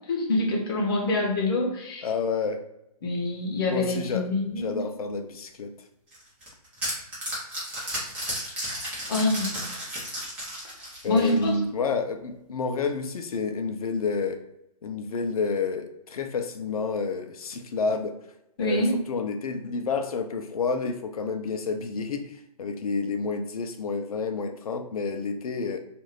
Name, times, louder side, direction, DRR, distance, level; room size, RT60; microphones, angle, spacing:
voice 1, 0.1-2.1 3.0-4.7 9.1-9.6 11.0-11.5 18.6-18.9, left 2 dB, 35° left, -1 dB, 0.8 m, -25 dB
voice 2, 2.0-2.6 3.7-4.3 4.6-5.7 11.0-14.4 14.8-18.2 18.6-25.8, left 4 dB, 65° left, 7 dB, 0.5 m, -29 dB
sound 1, 6.1-11.6, right 1 dB, 5° right, 0.6 m, -33 dB
2.5 x 2.5 x 3.0 m, 0.85 s
hypercardioid pair, 145°, 20 cm